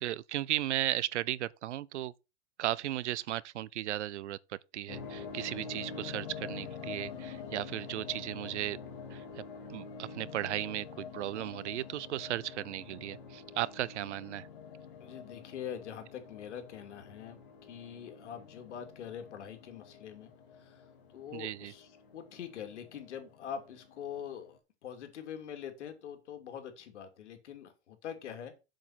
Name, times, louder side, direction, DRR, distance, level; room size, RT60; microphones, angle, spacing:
voice 1, 0.0-2.1 2.6-8.8 9.1-9.4 9.7-14.5 21.3-21.7, right 14 dB, 85° right, 0.7 m, -36 dB
sound 1, 4.9-24.6, left 6 dB, 50° left, 2.9 m, -47 dB
voice 2, 15.0-28.5, left 8 dB, 85° left, 2.9 m, -44 dB
7.7 x 6.6 x 5.8 m
supercardioid pair, 175°, 34 cm